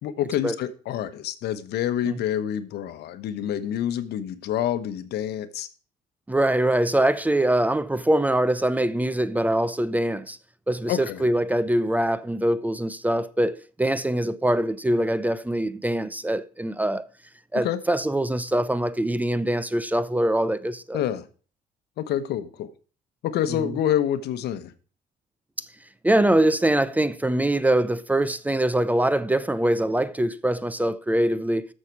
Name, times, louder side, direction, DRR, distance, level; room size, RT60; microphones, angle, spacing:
voice 1, 0.0-5.7 10.9-11.2 17.6-17.8 20.9-21.2 22.0-22.7 23.2-24.7, left 10 dB, 75° left, 1.1 m, -27 dB
voice 2, 6.3-10.4 10.7-17.1 17.5-21.0 23.5-23.8 25.6-25.7 26.0-31.7, right 1 dB, 10° right, 0.6 m, -23 dB
13.0 x 6.7 x 4.6 m
cardioid pair, 110°, 17 cm